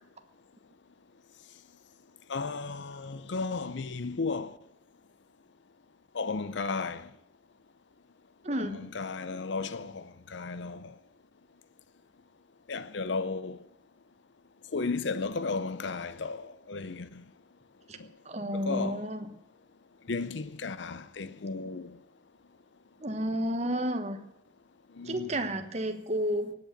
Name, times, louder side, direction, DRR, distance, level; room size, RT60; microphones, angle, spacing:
voice 1, 2.3-4.5 6.1-7.1 8.6-10.9 12.7-13.6 14.7-17.2 18.5-19.0 20.1-22.0 25.0-25.3, left 4 dB, 70° left, 0.6 m, -34 dB
voice 2, 8.4-8.8 17.9-18.0 18.2-19.3 23.0-24.2 25.0-26.5, equal, 35° right, 1.3 m, -31 dB
17.0 x 8.6 x 7.3 m
head